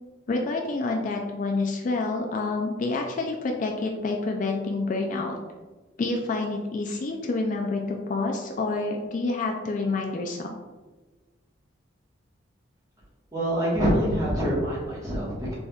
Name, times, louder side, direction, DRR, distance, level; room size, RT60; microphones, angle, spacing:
voice 1, 0.3-5.4 6.0-10.5, left 3 dB, 40° left, 2 dB, 0.3 m, -28 dB
voice 2, 13.3-15.5, equal, 20° right, -7 dB, 1.3 m, -25 dB
4.0 x 3.4 x 2.3 m, 1.3 s
head